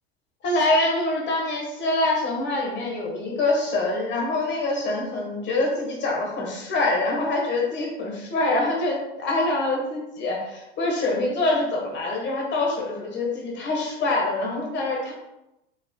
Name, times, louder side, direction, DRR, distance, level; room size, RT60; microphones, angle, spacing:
voice 1, 0.4-15.1, left 2 dB, 35° left, -1 dB, 1.4 m, -25 dB
5.2 x 3.0 x 2.2 m, 0.91 s
hypercardioid pair, 110°, 33 cm